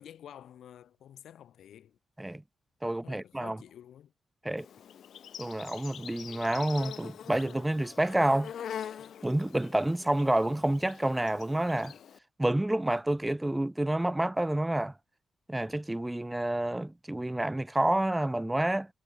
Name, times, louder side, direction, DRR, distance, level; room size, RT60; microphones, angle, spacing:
voice 1, 0.0-2.0 3.0-4.1, left 10 dB, 90° left, 4.6 m, -50 dB
voice 2, 2.8-3.6 4.4-4.7 5.4-8.5 9.2-11.9 12.4-14.9 15.5-18.9, right 1 dB, 5° right, 0.3 m, -29 dB
Insect, 4.6-12.2, left 9 dB, 65° left, 4.3 m, -44 dB
wide cardioid pair, 175°, 0 cm